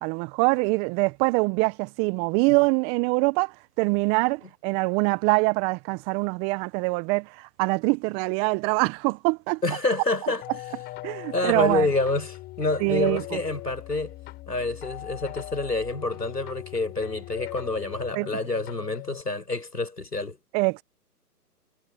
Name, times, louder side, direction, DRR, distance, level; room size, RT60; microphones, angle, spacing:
voice 1, 0.0-9.6 11.0-11.9 12.8-13.2 18.1-18.3 20.5-20.8, right 27 dB, 10° right, 0.8 m, -24 dB
voice 2, 9.6-10.4 11.3-14.1 14.5-20.4, left 3 dB, 90° left, 6.8 m, -28 dB
sound 1, 10.4-19.2, left 17 dB, 20° left, 7.8 m, -40 dB
figure-of-eight pair, 130°, 47 cm